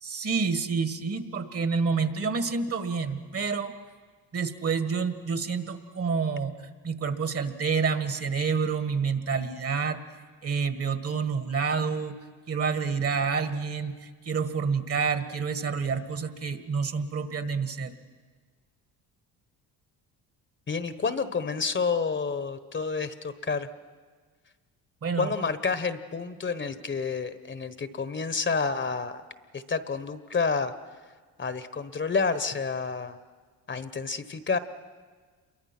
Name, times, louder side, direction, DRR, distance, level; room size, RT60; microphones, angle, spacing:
voice 1, 0.0-3.7 4.3-10.0 10.4-12.2 12.5-17.9 25.0-25.3, right 5 dB, 40° right, 10 dB, 1.8 m, -28 dB
voice 2, 20.7-23.7 25.2-29.2 29.5-30.7 31.4-33.2 33.7-34.6, left 5 dB, 30° left, 12 dB, 1.2 m, -29 dB
27.5 x 23.0 x 6.1 m, 1.5 s
supercardioid pair, 80°, 36 cm